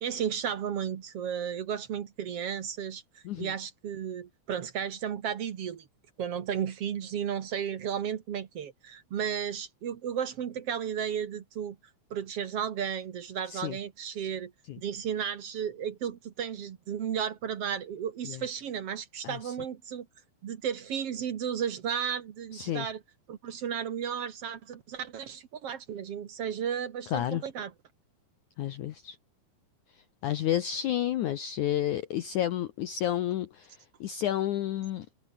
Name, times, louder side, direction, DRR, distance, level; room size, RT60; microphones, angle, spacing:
voice 1, 0.0-3.0 3.4-5.9 6.2-11.8 12.1-20.1 20.4-23.0 23.3-27.7, right 8 dB, 60° right, 1.6 m, -34 dB
voice 2, 22.5-22.9 27.1-27.4 28.6-29.2 30.2-35.1, left 12 dB, 75° left, 1.8 m, -31 dB
omnidirectional pair, 4.7 m